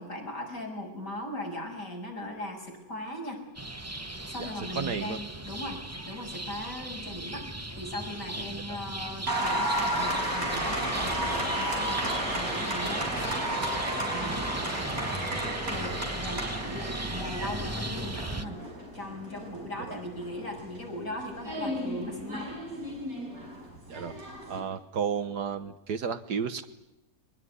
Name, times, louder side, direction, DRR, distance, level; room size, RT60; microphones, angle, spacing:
voice 1, 0.0-3.4 4.3-13.8 14.1-14.4 15.7-18.6 18.9-22.6, left 1 dB, 50° left, 1 dB, 6.8 m, -39 dB
sound 1, 3.5-18.4, right 2 dB, 15° right, 0.6 m, -37 dB
voice 2, 4.4-5.2 8.7-8.8 19.8-20.0 23.9-24.2 24.5-26.6, right 6 dB, 70° right, 11 dB, 1.7 m, -33 dB
Applause, 9.3-24.6, right 1 dB, 55° right, 6.2 m, -33 dB
23.0 x 21.0 x 9.8 m, 0.92 s
omnidirectional pair, 1.9 m